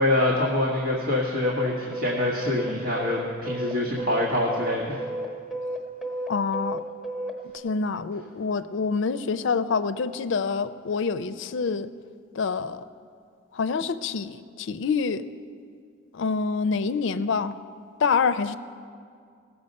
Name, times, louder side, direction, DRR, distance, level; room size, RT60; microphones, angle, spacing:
voice 1, 0.0-5.0, left 1 dB, 85° right, -5 dB, 1.6 m, -25 dB
sound 1, 1.4-7.6, right 1 dB, ahead, 1.0 m, -32 dB
voice 2, 6.3-6.8 7.6-11.9 12.3-12.8 13.5-15.2 16.1-17.6 18.0-18.6, left 5 dB, 60° left, 13 dB, 0.4 m, -26 dB
18.0 x 7.0 x 5.3 m, 2.2 s
head